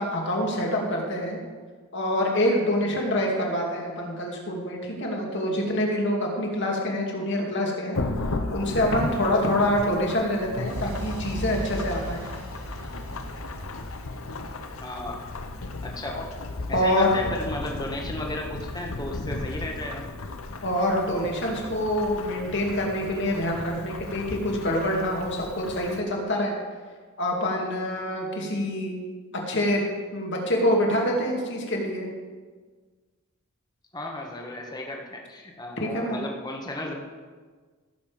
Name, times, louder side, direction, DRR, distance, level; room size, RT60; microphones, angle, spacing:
voice 1, 0.0-1.4 1.9-8.0 8.5-12.2 16.7-17.1 20.6-26.5 27.2-29.0 29.3-32.1 35.8-36.2, left 1 dB, 55° left, 0 dB, 2.5 m, -26 dB
Thunderstorm / Rain, 7.9-26.0, left 2 dB, 70° left, 0.9 m, -35 dB
sound 1, 10.7-18.6, equal, 85° right, 4.5 m, -39 dB
voice 2, 14.8-15.2 15.8-16.2 16.7-20.0 33.9-36.9, left 1 dB, 20° left, 1 dB, 1.5 m, -34 dB
17.0 x 7.2 x 5.2 m, 1.5 s
head